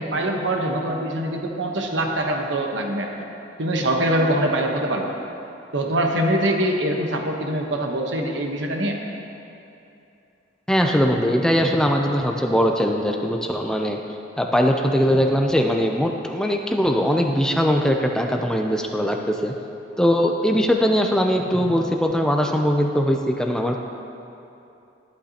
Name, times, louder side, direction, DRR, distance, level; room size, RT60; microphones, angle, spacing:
voice 1, 0.0-3.1 3.6-5.2 5.7-9.0, right 1 dB, 75° right, 2 dB, 1.1 m, -23 dB
voice 2, 10.7-14.0 14.4-19.5 20.0-23.8, equal, 5° left, 2 dB, 0.5 m, -21 dB
12.0 x 11.5 x 2.9 m, 2.8 s
head